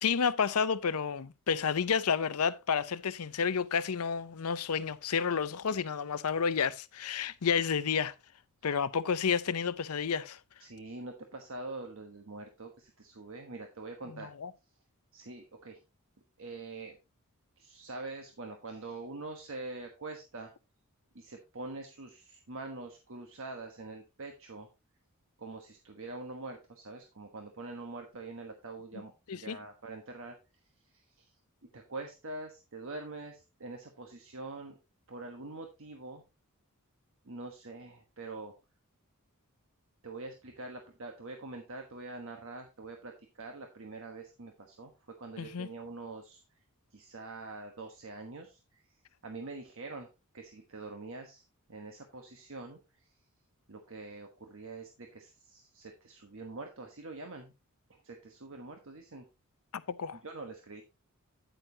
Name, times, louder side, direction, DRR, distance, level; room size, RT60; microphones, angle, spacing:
voice 1, 0.0-8.1 8.6-10.4 14.1-14.5 29.3-29.6 45.4-45.7 59.9-60.2, left 6 dB, 80° left, 0.6 m, -30 dB
voice 2, 10.6-14.3 15.1-15.8 16.4-17.0 17.6-20.5 21.1-24.7 25.4-30.3 30.9-31.3 31.7-34.8 35.1-36.2 37.2-38.5 40.0-44.9 45.2-46.4 46.9-48.8 49.2-50.1 50.3-51.4 51.7-52.8 53.7-57.5 58.0-59.2 60.2-60.8, right 3 dB, 60° right, 1.2 m, -44 dB
9.1 x 9.1 x 2.8 m
head